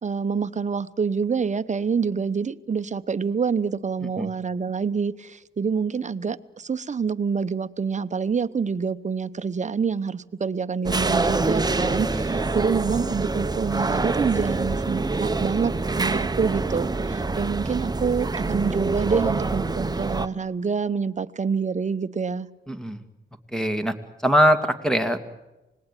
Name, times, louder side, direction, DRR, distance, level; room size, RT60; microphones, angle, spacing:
voice 1, 0.0-22.5, right 5 dB, 35° right, 1.0 m, -27 dB
sound 1, 10.8-20.3, right 3 dB, 20° right, 1.1 m, -26 dB
voice 2, 22.7-23.0 23.5-23.9 24.2-25.2, equal, 5° left, 2.3 m, -21 dB
26.0 x 19.5 x 9.1 m
cardioid pair, 80°, 20 cm